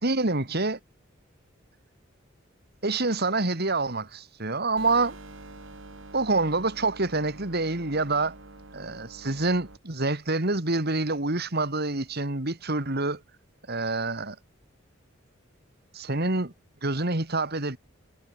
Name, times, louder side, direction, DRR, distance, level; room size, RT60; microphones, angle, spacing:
voice 1, 0.0-0.8 2.8-5.2 6.1-8.4 8.7-13.2 13.7-14.4 15.9-16.5 16.8-17.8, right 3 dB, 50° right, 2.7 m, -27 dB
sound 1, 4.8-9.8, right 2 dB, 70° right, 2.7 m, -46 dB
head